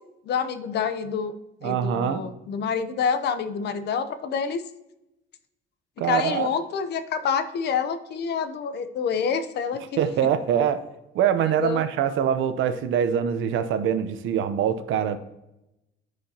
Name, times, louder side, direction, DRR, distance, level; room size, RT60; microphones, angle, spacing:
voice 1, 0.3-1.3 1.6-4.6 6.0-10.0 11.6-11.8, left 6 dB, 55° left, 11 dB, 0.7 m, -27 dB
voice 2, 1.6-2.2 6.0-6.5 10.0-10.8 11.1-15.2, right 8 dB, 70° right, 10 dB, 0.8 m, -24 dB
12.5 x 5.0 x 2.8 m, 0.92 s
cardioid pair, 165°, 21 cm